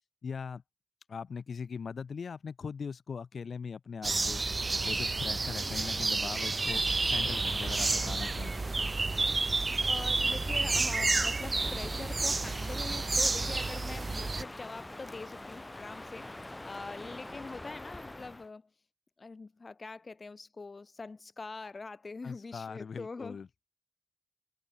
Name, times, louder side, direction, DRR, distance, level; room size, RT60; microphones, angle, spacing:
voice 1, 0.2-0.6 1.1-4.4 4.8-8.5 22.2-23.5, left 6 dB, 85° left, 1.8 m, -40 dB
sound 1, 4.0-14.4, right 3 dB, 45° right, 0.4 m, -30 dB
Crow, 7.0-18.5, left 1 dB, 20° left, 3.1 m, -45 dB
voice 2, 9.8-18.7 19.2-23.4, left 3 dB, 50° left, 1.5 m, -44 dB
wide cardioid pair, 80°, 0 cm